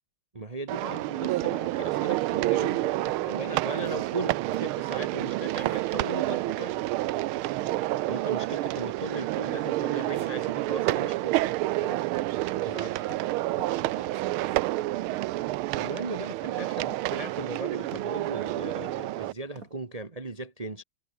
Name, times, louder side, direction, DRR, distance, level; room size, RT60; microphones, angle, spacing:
voice 1, 0.3-3.0 3.3-6.8 8.1-11.6 11.8-12.1 12.6-13.0 15.7-20.8, right 2 dB, 20° right, 1.2 m, -37 dB
sound 1, 0.7-19.3, right 17 dB, 85° right, 1.5 m, -29 dB
voice 2, 3.0-3.4 7.6-7.9 12.9-13.3 13.7-14.9, left 3 dB, 60° left, 6.8 m, -51 dB
sound 2, 3.5-4.6 5.0-5.1 5.6-6.0 9.7-11.0 11.3-11.5 11.8-12.4 12.6-13.3 13.6-14.2 14.5-14.7 15.1-15.5 16.4-17.1 17.4-17.6 17.9-19.1 19.6-19.7, right 3 dB, 40° right, 4.4 m, -49 dB
omnidirectional pair, 2.3 m